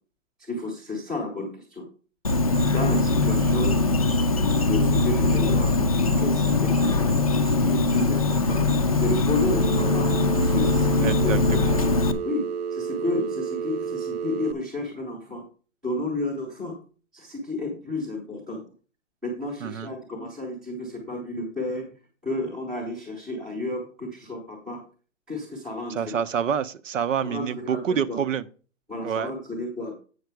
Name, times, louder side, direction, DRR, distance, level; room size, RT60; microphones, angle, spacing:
voice 1, 0.5-1.8 2.7-3.8 4.7-8.6 8.9-10.1 10.4-11.4 12.2-15.4 15.8-16.8 17.1-18.6 19.2-21.9 22.2-24.8 25.3-26.1 27.2-28.2 28.9-29.9, left 2 dB, ahead, -6 dB, 0.7 m, -31 dB
Insect, 2.2-12.1, left 3 dB, 30° left, 0.4 m, -22 dB
Telephone, 9.5-14.5, right 7 dB, 55° right, 0.5 m, -31 dB
voice 2, 11.0-11.8 19.6-19.9 25.9-28.5 29.0-29.3, right 8 dB, 80° right, 13 dB, 0.8 m, -27 dB
8.1 x 5.9 x 4.6 m, 0.38 s
hypercardioid pair, 175°, 37 cm